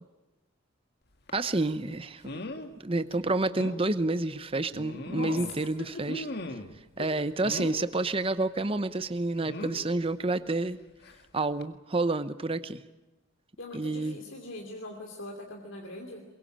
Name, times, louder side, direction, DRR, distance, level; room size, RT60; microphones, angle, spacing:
sound 1, 1.3-1.4 2.2-2.7 3.1-3.2 3.5-3.8 4.7-5.6 6.1-6.8 7.4-7.9 9.4-9.9 11.0-11.2 11.6-11.7, left 2 dB, 55° left, 1.9 m, -39 dB
voice 1, 1.3-2.4 2.8-6.2 7.0-10.8 11.3-12.8 13.7-14.2, right 2 dB, 30° right, 12 dB, 0.9 m, -29 dB
voice 2, 5.1-5.5 7.0-7.1 13.6-16.2, left 2 dB, 70° left, 1 dB, 2.9 m, -41 dB
23.0 x 22.5 x 8.7 m, 1.0 s
head